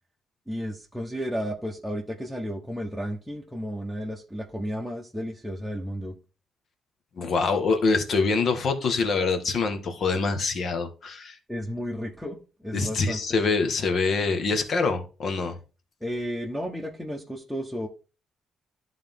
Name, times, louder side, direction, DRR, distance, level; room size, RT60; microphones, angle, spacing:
voice 1, 0.5-6.1 11.5-13.2 16.0-17.9, equal, ahead, -1 dB, 1.1 m, -33 dB
voice 2, 7.1-11.4 12.7-15.6, left 4 dB, 55° left, 7 dB, 1.5 m, -25 dB
11.5 x 3.8 x 3.7 m, 0.34 s
cardioid pair, 90°, 0 cm